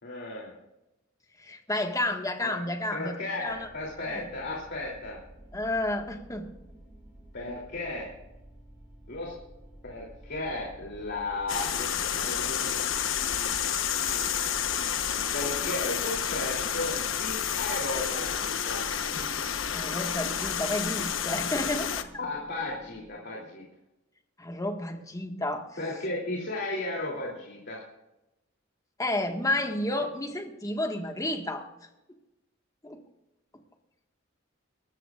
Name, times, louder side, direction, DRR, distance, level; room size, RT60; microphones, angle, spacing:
voice 1, 0.0-0.5 2.4-2.6 2.9-5.2 7.3-8.1 9.1-9.4 9.8-12.8 15.3-18.8 22.2-23.6 25.8-27.8, left 2 dB, 55° left, -3 dB, 3.1 m, -35 dB
voice 2, 1.4-3.7 4.0-4.3 5.5-6.5 14.4-14.7 19.7-22.1 24.4-25.7 29.0-31.7 32.8-33.0, left 1 dB, 15° left, 4 dB, 1.7 m, -31 dB
sound 1, 3.5-23.1, right 1 dB, 10° right, 3.4 m, -51 dB
sound 2, 11.5-22.0, left 8 dB, 75° left, 1.1 m, -30 dB
23.5 x 13.5 x 2.5 m, 0.96 s
head